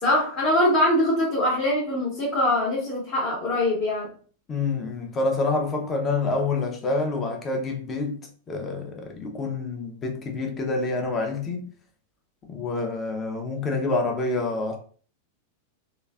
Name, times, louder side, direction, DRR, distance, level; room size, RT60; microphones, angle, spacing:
voice 1, 0.0-4.1, left 1 dB, 40° left, 1.2 m, -23 dB
voice 2, 4.5-8.2 8.5-11.7 12.5-14.8, left 3 dB, 25° left, 0.7 m, -27 dB
3.0 x 2.5 x 2.3 m
figure-of-eight pair, 90°, 0 cm